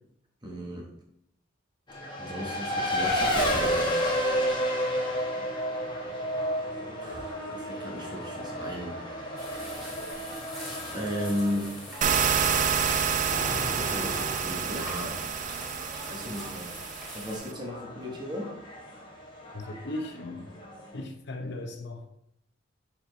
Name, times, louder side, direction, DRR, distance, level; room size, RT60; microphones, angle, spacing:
voice 1, 0.4-0.9 2.0-4.2 7.0-9.0 10.9-11.9 13.4-15.2 16.1-16.7 17.1-18.6, equal, 25° right, 0 dB, 1.1 m, -35 dB
Race car auto racing, 1.9-21.0, equal, 25° left, 1.1 m, -32 dB
sound 1, 9.4-17.4, equal, ahead, 2.0 m, -44 dB
sound 2, 12.0-17.5, right 7 dB, 40° right, 0.5 m, -28 dB
voice 2, 19.5-20.5 20.9-22.2, left 2 dB, 60° left, 6 dB, 0.8 m, -37 dB
7.0 x 4.6 x 3.2 m, 0.76 s
head